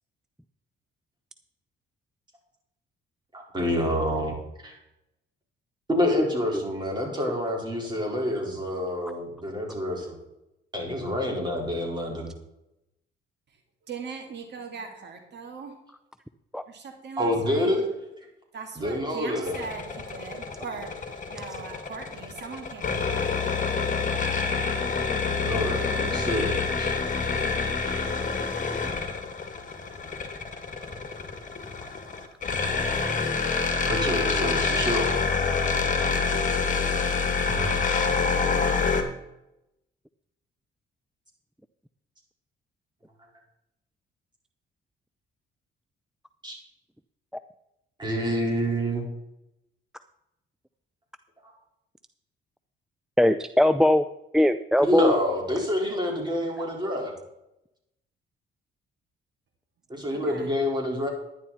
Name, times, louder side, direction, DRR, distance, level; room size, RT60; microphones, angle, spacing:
voice 1, 3.3-4.7 5.9-10.1 10.7-12.3 17.2-17.9 18.8-19.6 25.4-26.5 26.8-26.9 33.9-35.1 37.4-37.7 46.4-46.6 48.0-49.1 51.4-51.5 54.8-57.1 59.9-61.1, equal, 20° right, -1 dB, 4.6 m, -27 dB
voice 2, 13.9-15.8 16.7-17.7 18.5-20.9 21.3-23.5 60.0-60.5, right 5 dB, 60° right, 4 dB, 2.2 m, -40 dB
sound 1, 19.5-39.0, left 4 dB, 40° left, 2.0 m, -27 dB
voice 3, 53.2-54.1 54.3-55.1, left 1 dB, 5° right, 11 dB, 0.5 m, -20 dB
11.0 x 10.5 x 4.3 m, 0.88 s
cardioid pair, 90°, 20 cm